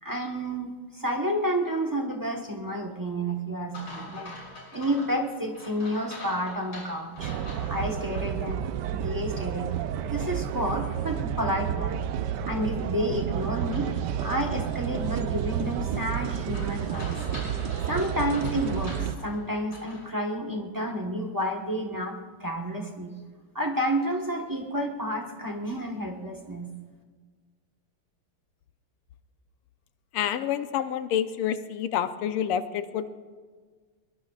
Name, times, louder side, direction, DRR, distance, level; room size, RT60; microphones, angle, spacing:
voice 1, 0.0-4.3 4.7-7.3 7.7-12.0 12.5-13.9 14.2-17.2 17.9-22.1 22.4-23.1 23.5-26.7, equal, 15° right, 2 dB, 0.7 m, -30 dB
sound 1, 3.7-8.2 8.7-8.8 13.7-20.1, left 2 dB, 60° left, 6.6 m, -45 dB
sound 2, 7.2-19.2, right 9 dB, 75° right, 1.0 m, -30 dB
voice 2, 30.1-33.1, left 9 dB, 90° left, 10 dB, 1.7 m, -28 dB
22.0 x 22.0 x 2.4 m, 1.5 s
omnidirectional pair, 2.4 m